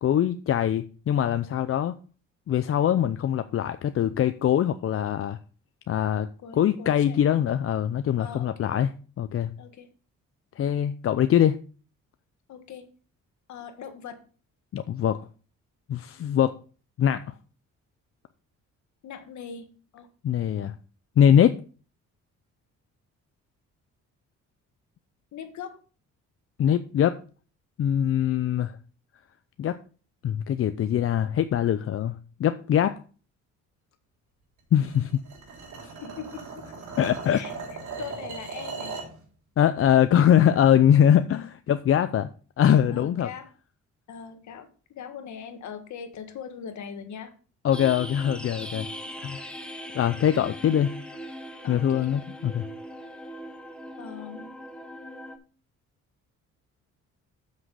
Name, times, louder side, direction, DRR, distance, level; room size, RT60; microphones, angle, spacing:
voice 1, 0.0-2.0 2.5-5.4 5.9-6.3 6.6-9.6 10.6-11.6 14.7-15.2 15.9-16.6 17.0-17.2 20.2-20.7 21.2-21.6 26.6-27.2 27.8-28.8 29.6-29.8 30.2-33.0 34.7-35.2 37.0-37.4 39.6-42.3 42.6-43.3 47.6-48.9 49.2-49.4 49.9-51.0 51.7-52.7, left 9 dB, 45° left, 11 dB, 0.5 m, -22 dB
voice 2, 6.4-7.2 8.2-8.7 9.6-9.9 12.5-12.8 13.5-14.2 19.0-19.7 19.9-20.1 25.3-25.8 35.8-36.6 37.3-37.5 38.0-38.9 42.9-43.5 44.1-47.3 49.0-49.1 51.6-52.1 54.0-54.6, left 7 dB, 70° left, 7 dB, 1.6 m, -40 dB
sound 1, 34.8-39.2, right 4 dB, 70° right, 3.6 m, -38 dB
sound 2, 47.7-55.4, equal, 5° left, 1.2 m, -40 dB
7.4 x 6.3 x 4.8 m, 0.39 s
cardioid pair, 90°, 30 cm